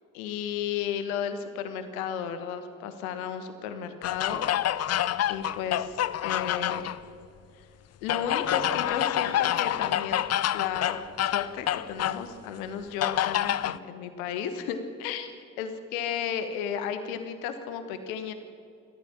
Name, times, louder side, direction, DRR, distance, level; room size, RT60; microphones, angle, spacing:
voice 1, 0.1-5.0 5.3-7.0 7.6-7.7 8.0-10.3 10.5-15.3 15.6-18.3, left 8 dB, 70° left, 9 dB, 1.4 m, -34 dB
sound 1, 4.0-7.0 8.1-12.2 13.0-13.8, left 12 dB, 35° left, 0.6 m, -27 dB
27.0 x 13.5 x 7.3 m, 2.5 s
figure-of-eight pair, 45°, 44 cm